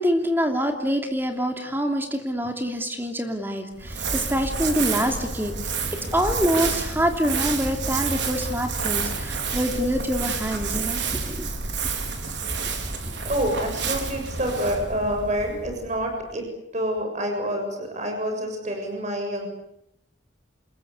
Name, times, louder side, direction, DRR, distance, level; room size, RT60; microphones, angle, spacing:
voice 1, 0.0-5.5 6.1-11.5, equal, 10° right, 4 dB, 3.0 m, -25 dB
Crumpling crinkling, 3.8-16.2, right 4 dB, 75° right, 4.6 m, -29 dB
voice 2, 13.2-19.5, equal, 40° right, 3 dB, 7.1 m, -27 dB
28.5 x 21.5 x 8.5 m, 0.76 s
head